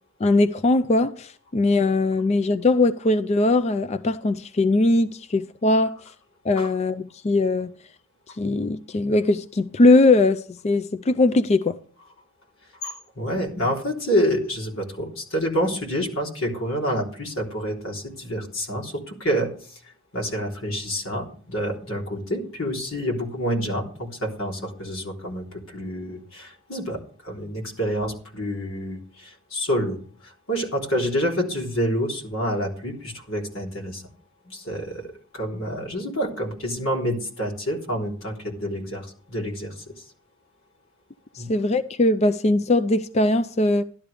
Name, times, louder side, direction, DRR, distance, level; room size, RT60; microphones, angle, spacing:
voice 1, 0.2-6.0 6.4-7.7 8.4-11.8 41.3-43.8, left 2 dB, 30° left, 0.4 m, -20 dB
voice 2, 12.8-19.8 20.1-34.0 34.4-39.8 41.4-41.5, equal, 90° left, 3.5 m, -28 dB
13.5 x 11.5 x 3.4 m
head